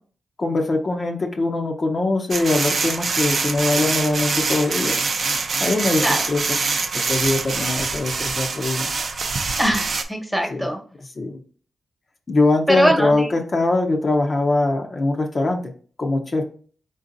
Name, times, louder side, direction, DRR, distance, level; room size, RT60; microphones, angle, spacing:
voice 1, 0.4-5.0 5.6-6.4 7.1-8.9 10.5-10.7 11.2-11.4 12.3-15.6 16.0-16.4, left 2 dB, 45° left, 2 dB, 0.6 m, -22 dB
sound 1, 2.3-10.0, right 4 dB, 60° right, 0.5 m, -24 dB
voice 2, 9.6-10.8 12.7-13.3, equal, 5° right, 2 dB, 1.1 m, -21 dB
3.9 x 3.8 x 2.6 m, 0.43 s
cardioid pair, 75°, 0 cm